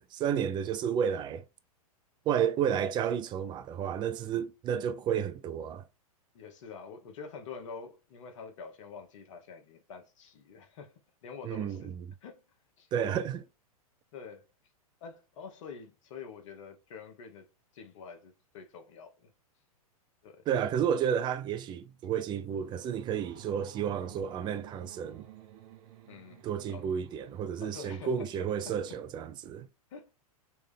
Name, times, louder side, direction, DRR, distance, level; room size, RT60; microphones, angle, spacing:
voice 1, 0.0-1.4 2.3-5.8 11.4-12.1 12.9-13.4 20.5-25.2 26.4-29.7, right 8 dB, 25° right, 0.4 m, -31 dB
voice 2, 6.3-10.9 11.2-11.9 12.2-12.4 12.8-12.9 14.1-14.5 15.0-17.5 17.7-19.3 20.2-20.4 26.1-26.4 26.7-26.9 27.6-28.1 28.6-28.7 29.9-30.1, left 5 dB, 55° left, 1.2 m, -46 dB
sound 1, 21.8-29.0, right 11 dB, 50° right, 0.8 m, -54 dB
3.5 x 3.2 x 3.4 m
hypercardioid pair, 110°, 19 cm